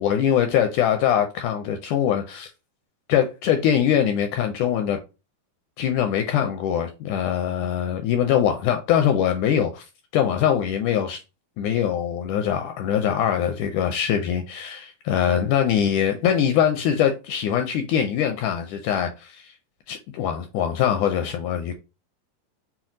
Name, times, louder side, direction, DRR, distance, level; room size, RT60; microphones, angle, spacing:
voice 1, 0.0-2.5 3.1-5.0 5.8-9.8 10.1-11.2 11.6-19.5 19.9-21.7, left 9 dB, 80° left, 1.8 m, -22 dB
5.8 x 2.3 x 3.8 m
omnidirectional pair, 3.9 m